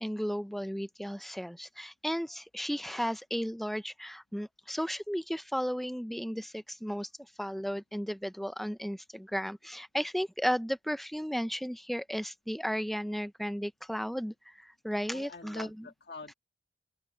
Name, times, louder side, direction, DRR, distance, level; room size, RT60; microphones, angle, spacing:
voice 1, 0.0-7.1 7.4-15.9, equal, ahead, 0.5 m, -34 dB
voice 2, 15.0-16.3, left 3 dB, 50° left, 1.7 m, -46 dB
open air
head